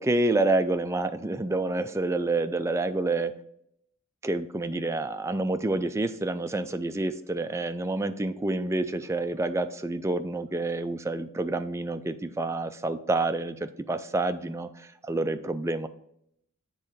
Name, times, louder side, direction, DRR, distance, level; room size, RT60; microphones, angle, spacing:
voice 1, 0.0-3.4 4.2-15.9, right 2 dB, 10° right, 8 dB, 0.3 m, -28 dB
7.7 x 3.7 x 6.2 m, 0.74 s
head